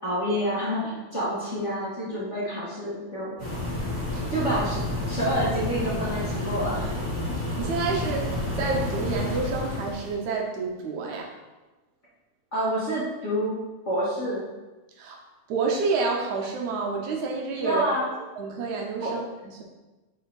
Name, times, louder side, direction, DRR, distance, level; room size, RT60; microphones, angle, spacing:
voice 1, 0.0-3.4 4.3-4.8 5.1-6.9 12.5-13.6 13.9-14.4 17.6-18.1 19.0-19.1, equal, 30° left, -9 dB, 1.7 m, -28 dB
sound 1, 3.4-10.2, left 1 dB, 20° right, 1.5 m, -30 dB
voice 2, 7.4-11.3 15.0-15.2 15.5-17.8 18.4-19.6, right 4 dB, 80° right, 1 dB, 2.4 m, -29 dB
5.5 x 5.4 x 4.8 m, 1.1 s
omnidirectional pair, 3.3 m